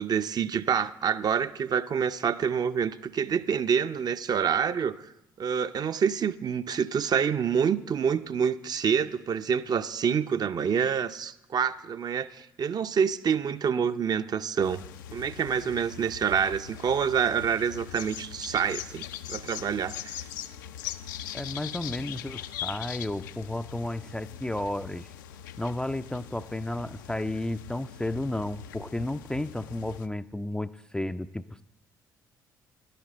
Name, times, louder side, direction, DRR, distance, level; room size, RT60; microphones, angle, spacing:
voice 1, 0.0-4.9 5.4-14.8 15.1-20.2, right 7 dB, 40° right, 12 dB, 0.6 m, -27 dB
sound 1, 14.6-30.1, left 10 dB, 75° left, 0.5 m, -41 dB
voice 2, 21.3-25.1 25.6-31.6, left 1 dB, 5° left, 12 dB, 0.4 m, -33 dB
11.5 x 11.0 x 4.3 m, 0.87 s
figure-of-eight pair, 50°, 11 cm